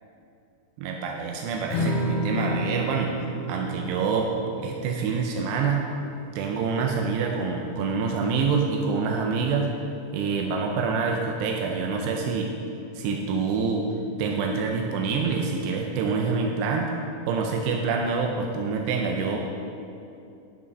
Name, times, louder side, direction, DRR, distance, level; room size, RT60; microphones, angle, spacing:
voice 1, 0.8-3.1 3.5-4.3 4.6-5.9 6.4-9.7 10.1-12.5 13.0-13.9 14.2-16.9 17.3-19.4, right 5 dB, 85° right, 1 dB, 2.8 m, -26 dB
Strum, 1.7-8.0, equal, 85° left, 4.9 m, -32 dB
11.5 x 5.7 x 5.4 m, 2.5 s
omnidirectional pair, 4.9 m